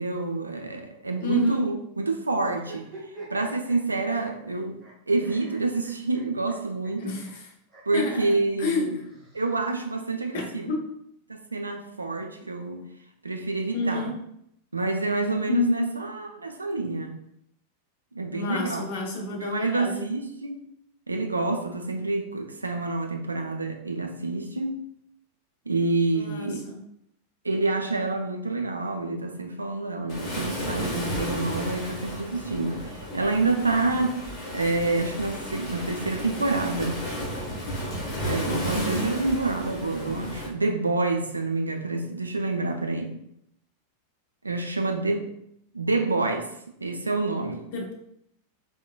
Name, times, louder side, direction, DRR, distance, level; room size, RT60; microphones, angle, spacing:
voice 1, 0.0-2.9 3.3-4.8 5.1-7.2 7.9-8.9 9.3-10.7 11.3-12.9 13.2-14.1 14.7-17.1 18.1-20.6 21.1-24.8 25.7-26.6 27.4-34.2 34.5-37.0 38.2-43.2 44.4-45.3 45.7-46.5 46.8-47.6, right 3 dB, 80° right, 0.3 m, -27 dB
voice 2, 1.2-1.6 7.0-7.5 7.9-8.3 8.6-8.9 10.3-10.9 13.7-14.2 15.5-15.9 18.3-20.1 26.1-26.8 38.5-39.1 47.7-47.9, left 3 dB, 50° left, 0.7 m, -30 dB
sound 1, 2.4-4.9 5.2-6.5 6.8-6.9 7.2-7.3 7.7-7.8 8.9-9.9, right 3 dB, 20° right, 1.2 m, -46 dB
Waves surf, 30.1-40.5, equal, 30° left, 1.2 m, -33 dB
3.6 x 2.1 x 2.3 m
figure-of-eight pair, 90°, 0 cm